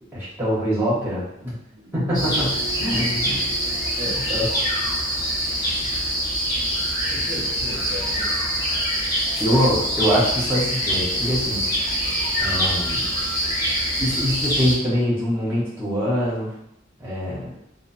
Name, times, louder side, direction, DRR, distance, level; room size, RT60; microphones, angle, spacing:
voice 1, 0.1-1.6 1.9-3.4 4.0-4.5 9.4-11.6 12.4-13.1 14.0-16.5 17.0-17.5, equal, 10° right, -9 dB, 0.9 m, -24 dB
sound 1, 1.7-6.9 7.2-7.3, right 8 dB, 75° right, 0.8 m, -42 dB
sound 2, 2.1-14.8, equal, 20° left, 0.9 m, -24 dB
voice 2, 2.8-3.5 3.9-4.3 5.5-5.6 7.1-8.5, left 1 dB, 30° right, -1 dB, 0.4 m, -34 dB
2.7 x 2.0 x 2.5 m, 0.77 s
head